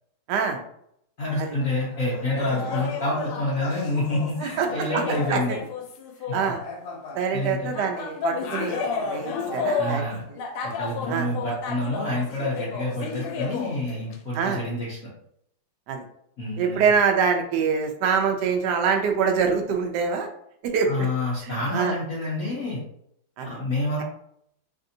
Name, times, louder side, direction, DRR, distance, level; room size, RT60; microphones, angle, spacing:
voice 1, 0.3-0.6 1.4-1.5 4.4-4.7 4.9-5.0 5.3-5.4 6.3-6.6 7.1-10.0 10.3-10.4 11.1-11.3 14.3-14.6 15.9-16.0 16.6-20.3 20.6-21.1 21.4-21.9 23.4-23.6, right 6 dB, 75° right, 4 dB, 0.9 m, -25 dB
sound 1, 1.2-7.5 7.7-14.3 14.6-14.7, left 5 dB, 90° left, 1.5 m, -32 dB
voice 2, 1.2-5.6 6.3-6.4 7.3-7.7 9.8-10.2 10.6-15.1 16.4-16.9 20.8-22.8 23.4-24.0, left 1 dB, 65° left, -6 dB, 0.8 m, -28 dB
3.3 x 2.6 x 2.6 m, 0.72 s
omnidirectional pair, 2.3 m